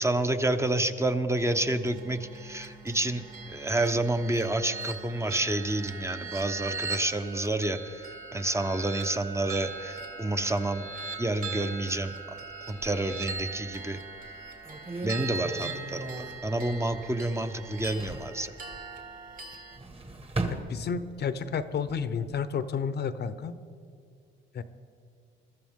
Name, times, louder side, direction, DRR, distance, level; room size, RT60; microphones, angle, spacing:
voice 1, 0.0-8.0 8.3-10.9 11.2-12.1 12.7-14.0 15.0-16.0 16.4-18.5, right 2 dB, 15° right, 8 dB, 0.9 m, -29 dB
sound 1, 1.4-19.8, right 4 dB, 45° right, 2.5 m, -40 dB
sound 2, 12.7-13.7 14.2-14.3 14.6-17.3 17.6-18.4 19.5-21.3 21.7-22.4, right 2 dB, 30° right, 1.7 m, -38 dB
voice 2, 20.5-23.5 24.5-24.6, left 6 dB, 55° left, 12 dB, 0.8 m, -31 dB
22.0 x 13.5 x 3.7 m, 2.2 s
cardioid pair, 90°, 20 cm